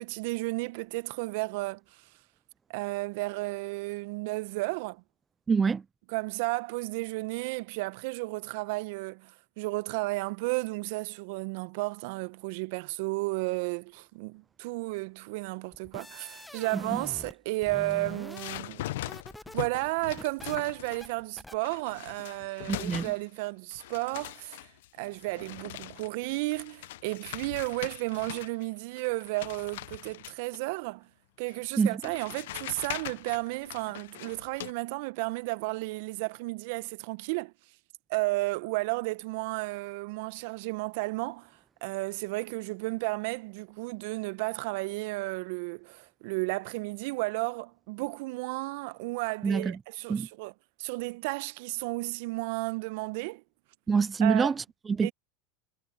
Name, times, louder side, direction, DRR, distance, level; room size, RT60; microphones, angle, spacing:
voice 1, 0.0-2.0 2.7-5.0 6.1-18.9 19.5-24.7 25.0-31.1 31.4-37.5 38.1-41.5 41.8-50.5 50.8-53.4 54.2-54.5 55.0-55.1, right 24 dB, 65° right, 1.1 m, -33 dB
voice 2, 5.5-5.8 16.7-17.0 22.7-23.1 31.8-32.0 49.4-49.8 50.1-50.3 53.9-55.1, right 5 dB, 20° right, 0.4 m, -26 dB
sound 1, 15.7-17.4 17.6-19.6 19.9-20.6 21.0-21.1 21.4-21.6, left 1 dB, 5° left, 1.2 m, -44 dB
sound 2, 17.8-21.2 21.6-23.5 23.7-28.7 29.0-30.6 31.5-31.6 32.0-34.7, left 16 dB, 70° left, 0.9 m, -41 dB
hypercardioid pair, 85°, 0 cm